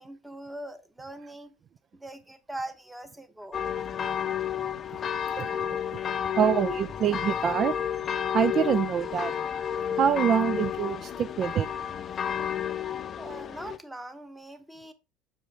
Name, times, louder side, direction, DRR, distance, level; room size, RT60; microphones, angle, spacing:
voice 1, 0.0-1.5 1.9-3.6 13.2-14.9, right 1 dB, 5° right, 1.1 m, -41 dB
sound 1, 3.5-13.8, left 9 dB, 40° left, 0.6 m, -31 dB
voice 2, 6.4-7.7 8.3-9.3 10.0-11.7, right 8 dB, 45° right, 0.4 m, -25 dB
7.7 x 4.9 x 3.6 m
hypercardioid pair, 80°, 0 cm